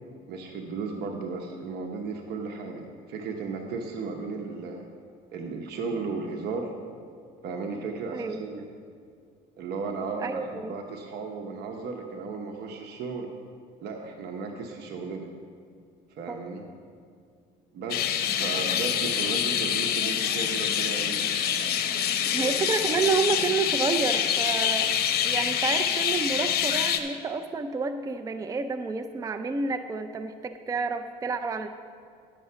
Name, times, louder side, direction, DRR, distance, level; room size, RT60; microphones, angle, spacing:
voice 1, 0.3-4.9 5.3-6.7 7.4-8.6 9.6-13.3 13.8-15.3 16.1-16.6 17.7-21.2 22.3-22.6, right 4 dB, 75° right, 2 dB, 0.9 m, -35 dB
voice 2, 10.2-10.7 16.3-16.4 22.3-31.7, right 4 dB, 20° right, 8 dB, 0.4 m, -29 dB
sound 1, 17.9-27.0, left 9 dB, 65° left, 0.8 m, -26 dB
10.5 x 6.8 x 5.6 m, 2.3 s
cardioid pair, 110°, 17 cm